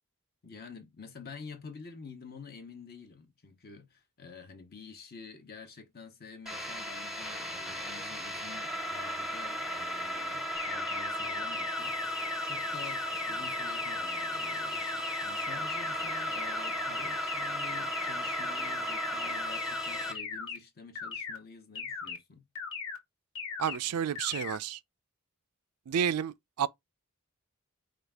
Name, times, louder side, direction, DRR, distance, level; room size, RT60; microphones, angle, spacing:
voice 1, 0.4-12.1 12.4-22.5, left 5 dB, 45° left, 0.9 m, -48 dB
sound 1, 6.5-20.1, equal, ahead, 0.6 m, -36 dB
sound 2, 10.6-20.6 21.0-21.4 21.8-22.2 22.6-23.0 23.4-23.8 24.2-24.6, left 5 dB, 65° left, 1.1 m, -38 dB
voice 2, 23.6-24.8 25.9-26.7, right 8 dB, 85° right, 0.4 m, -30 dB
4.8 x 2.4 x 3.4 m
head